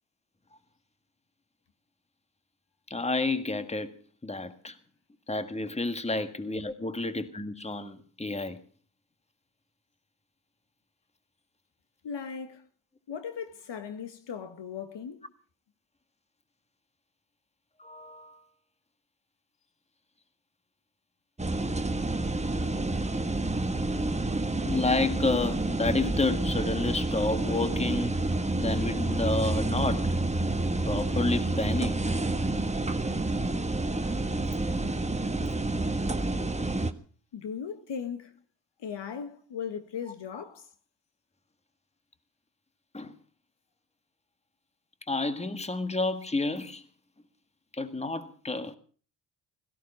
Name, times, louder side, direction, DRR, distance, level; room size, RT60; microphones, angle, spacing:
voice 1, 2.9-3.9 4.2-4.8 5.3-8.6 17.8-18.4 24.6-28.1 28.6-30.1 30.9-32.0 42.9-43.1 45.1-46.8 47.7-48.8, left 2 dB, 15° left, 1.8 m, -30 dB
voice 2, 12.0-12.6 13.1-15.3 37.3-38.4 38.8-40.7, left 7 dB, 65° left, 2.0 m, -37 dB
sound 1, 21.4-36.9, right 2 dB, 15° right, 1.4 m, -29 dB
17.0 x 15.0 x 5.5 m
supercardioid pair, 60°, 46 cm